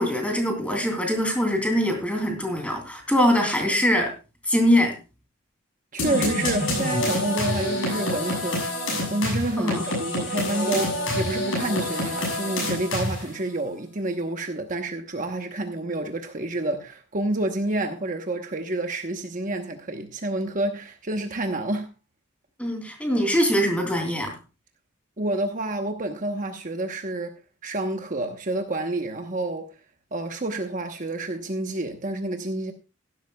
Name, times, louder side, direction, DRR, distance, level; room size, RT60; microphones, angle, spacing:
voice 1, 0.0-4.1 4.5-5.0 9.6-9.8 22.6-24.3, equal, 5° left, 3.0 m, -23 dB
voice 2, 5.9-21.9 25.2-29.7 30.1-32.7, right 2 dB, 40° right, 1.0 m, -29 dB
sound 1, 6.0-13.4, left 1 dB, 75° left, 7.2 m, -27 dB
16.0 x 12.0 x 2.3 m
head